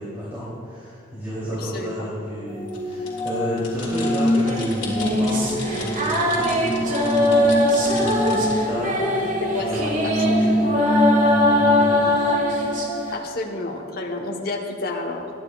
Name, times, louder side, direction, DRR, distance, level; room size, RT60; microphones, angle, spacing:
voice 1, 0.0-12.3, equal, 15° right, -10 dB, 2.9 m, -31 dB
voice 2, 1.5-2.1 9.2-10.7 13.1-15.3, left 2 dB, 50° left, 2 dB, 1.1 m, -30 dB
sound 1, 2.5-13.2, left 1 dB, 20° left, 1.8 m, -25 dB
sound 2, 2.6-8.5, left 4 dB, 70° left, 2.5 m, -37 dB
sound 3, 4.4-13.2, left 1 dB, 40° right, 1.5 m, -22 dB
21.0 x 9.9 x 2.4 m, 2.7 s
head